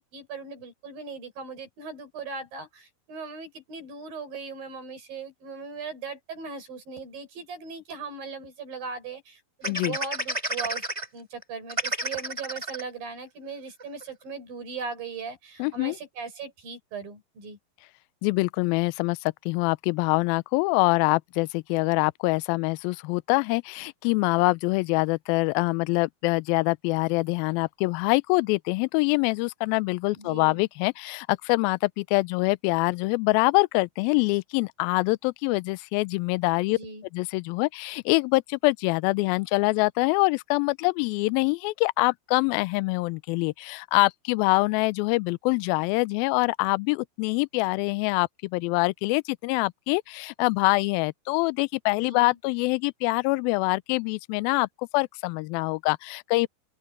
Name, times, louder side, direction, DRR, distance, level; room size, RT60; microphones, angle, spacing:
voice 1, 0.0-10.8 11.1-17.6 30.1-30.6 36.7-37.1 52.0-52.4, right 4 dB, 60° right, 8.3 m, -39 dB
voice 2, 9.6-10.0 15.6-16.0 18.2-36.8 37.1-56.5, left 24 dB, 80° left, 2.2 m, -25 dB
sound 1, 9.6-11.1 11.4-11.5 11.7-12.8 13.4-13.5 13.8-14.0, right 1 dB, 10° right, 2.2 m, -30 dB
open air
omnidirectional pair, 4.5 m